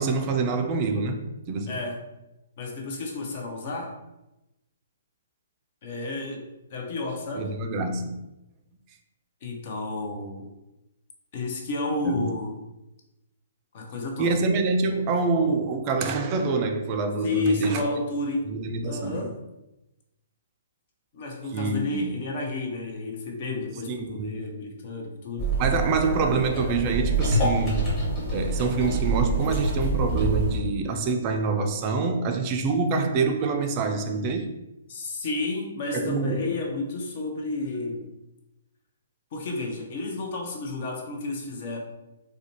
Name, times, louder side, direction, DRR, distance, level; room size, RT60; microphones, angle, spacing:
voice 1, 0.0-1.8 7.4-8.1 12.1-12.2 14.2-17.8 18.5-19.3 21.5-22.1 23.9-24.4 25.6-27.9 28.3-34.5 35.9-36.5, right 4 dB, 35° right, 0.3 m, -26 dB
voice 2, 1.7-2.0 2.6-3.9 5.8-7.5 9.4-10.5 11.3-12.5 13.7-14.4 17.2-18.6 18.8-19.4 21.1-25.5 34.9-38.1 39.3-41.8, left 2 dB, 50° left, 0.6 m, -31 dB
sound 1, 25.4-30.6, right 2 dB, 25° left, 1.3 m, -26 dB
2.4 x 2.2 x 2.9 m
hypercardioid pair, 130°, 0 cm